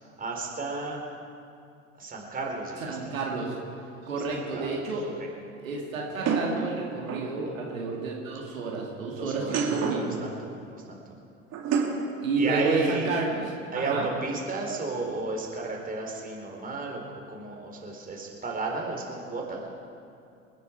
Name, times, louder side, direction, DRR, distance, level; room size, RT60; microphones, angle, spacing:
voice 1, 0.2-1.0 2.0-3.0 4.3-4.7 5.2-5.3 9.2-11.0 12.4-13.1 13.7-19.6, right 3 dB, 20° right, -1 dB, 4.2 m, -33 dB
voice 2, 2.8-3.6 4.1-5.1 5.6-10.2 12.2-13.4 13.7-14.1, right 3 dB, 70° right, -2 dB, 2.5 m, -30 dB
sound 1, 4.1-4.2 6.2-7.3 9.3-10.1 11.5-12.1, right 5 dB, 40° right, 2.8 m, -28 dB
28.0 x 10.5 x 4.7 m, 2.5 s
figure-of-eight pair, 70°, 41 cm